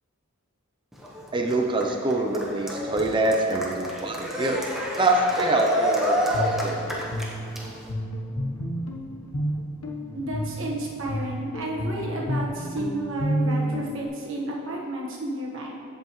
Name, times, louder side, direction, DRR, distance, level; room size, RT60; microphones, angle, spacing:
Cheering, 0.9-7.9, equal, ahead, 0.9 m, -29 dB
voice 1, 1.3-4.6 5.0-6.2 6.6-7.0, right 2 dB, 20° right, 2 dB, 0.5 m, -24 dB
Guitar, 6.1-14.1, equal, 85° left, 1.0 m, -31 dB
voice 2, 10.1-15.8, right 1 dB, 60° right, -3 dB, 1.4 m, -31 dB
14.5 x 5.5 x 3.1 m, 2.4 s
head